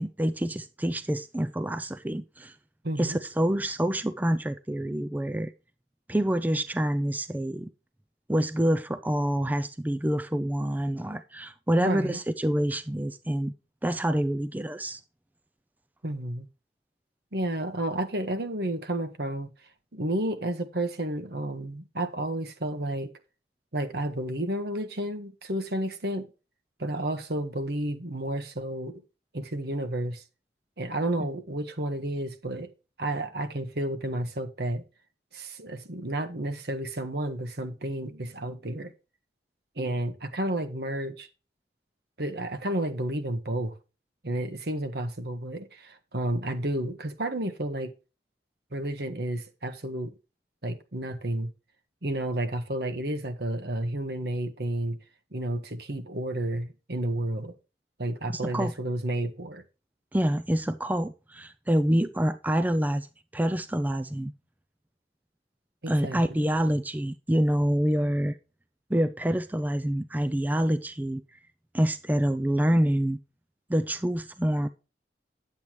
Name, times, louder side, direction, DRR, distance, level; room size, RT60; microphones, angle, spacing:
voice 1, 0.0-2.5 3.0-5.5 6.1-7.7 8.3-13.5 13.8-15.0 58.3-58.7 60.1-63.1 63.3-64.3 65.9-68.4 68.9-71.2 71.7-73.2 73.7-74.7, equal, 10° right, 0.5 m, -27 dB
voice 2, 2.8-3.2 11.8-12.2 16.0-16.5 17.3-19.5 19.9-23.1 23.7-26.3 26.8-28.9 29.3-30.2 30.8-32.7 33.0-34.8 35.3-38.9 39.7-41.3 42.2-43.8 44.2-47.9 48.7-50.1 50.6-51.5 52.0-55.0 55.3-57.5 58.0-59.6 65.8-66.5, right 1 dB, 65° right, 1.5 m, -31 dB
10.5 x 8.2 x 3.0 m
head